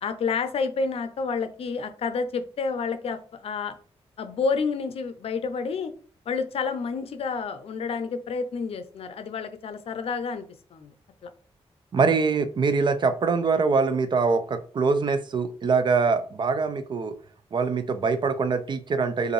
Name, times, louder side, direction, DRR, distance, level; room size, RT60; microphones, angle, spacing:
voice 1, 0.0-3.8 4.2-5.9 6.3-10.4 10.7-10.9 11.2-11.3 12.0-12.2, left 5 dB, 65° left, 9 dB, 0.5 m, -29 dB
voice 2, 11.9-17.2 17.5-19.3, right 4 dB, 45° right, 10 dB, 0.5 m, -23 dB
5.0 x 2.6 x 3.2 m, 0.42 s
wide cardioid pair, 135°, 11 cm